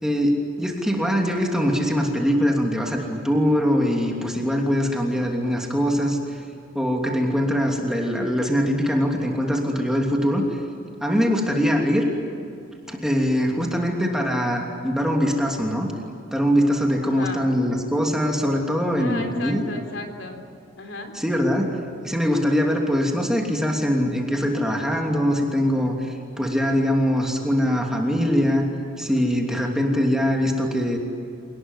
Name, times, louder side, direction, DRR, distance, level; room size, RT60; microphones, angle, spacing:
voice 1, 0.0-6.4 6.7-10.6 11.0-12.0 12.9-15.9 16.3-19.6 21.1-21.8 22.0-28.7 29.0-31.0, equal, 5° right, 0 dB, 2.9 m, -22 dB
voice 2, 17.0-17.4 19.0-20.4 20.8-21.1, left 2 dB, 65° left, 5 dB, 3.8 m, -35 dB
28.0 x 20.0 x 9.8 m, 2.5 s
head